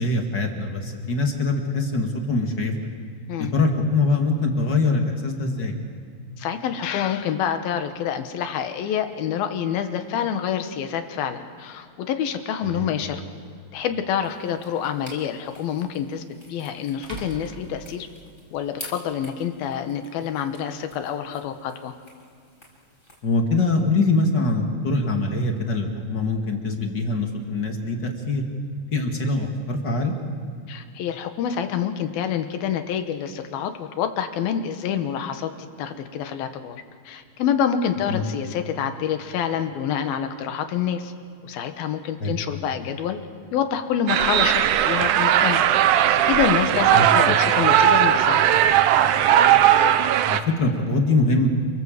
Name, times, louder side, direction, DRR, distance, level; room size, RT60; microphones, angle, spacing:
voice 1, 0.0-2.7 3.4-5.8 12.6-12.9 23.2-28.4 28.9-30.1 38.1-38.2 42.2-42.4 46.9-47.3 50.2-51.5, left 3 dB, 35° left, 3 dB, 2.3 m, -23 dB
voice 2, 6.4-13.2 13.7-16.2 16.5-18.1 18.5-21.9 30.7-35.5 35.8-41.1 41.4-43.2 43.5-45.6 46.2-48.4, left 8 dB, 80° left, 8 dB, 3.2 m, -27 dB
sound 1, 13.2-13.3 15.9-16.0 17.0-18.6, right 2 dB, 20° right, 3.3 m, -40 dB
sound 2, 14.2-23.2, left 1 dB, 15° left, 4.9 m, -48 dB
sound 3, 44.1-50.4, right 10 dB, 75° right, 2.1 m, -18 dB
28.5 x 24.0 x 7.7 m, 2.2 s
omnidirectional pair, 4.2 m